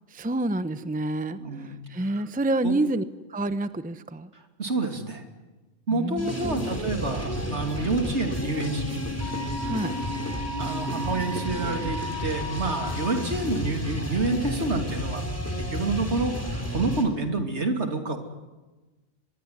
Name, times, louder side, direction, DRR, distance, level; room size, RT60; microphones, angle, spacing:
voice 1, 0.1-3.0 3.3-4.3 5.9-6.8 9.6-10.0, right 2 dB, 10° right, 12 dB, 0.8 m, -28 dB
voice 2, 1.4-1.8 2.1-2.2 2.6-2.7 4.6-5.2 5.9-9.0 10.6-15.2 15.6-18.2, right 3 dB, 65° right, 5 dB, 3.2 m, -28 dB
sound 1, 6.2-17.0, equal, 10° left, 3.8 m, -32 dB
Wind instrument woodwind instrument, 9.2-13.2, equal, 40° left, 4.5 m, -37 dB
24.5 x 22.0 x 9.7 m, 1.2 s
omnidirectional pair, 1.2 m